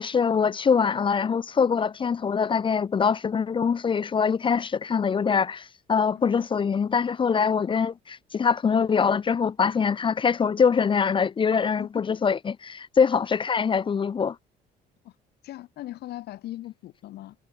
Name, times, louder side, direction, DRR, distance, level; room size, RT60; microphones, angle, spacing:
voice 1, 0.0-14.4, left 6 dB, 30° left, 0.7 m, -23 dB
voice 2, 11.8-12.2 15.0-15.1 15.4-17.4, left 15 dB, 75° left, 4.3 m, -39 dB
cardioid pair, 110°, 17 cm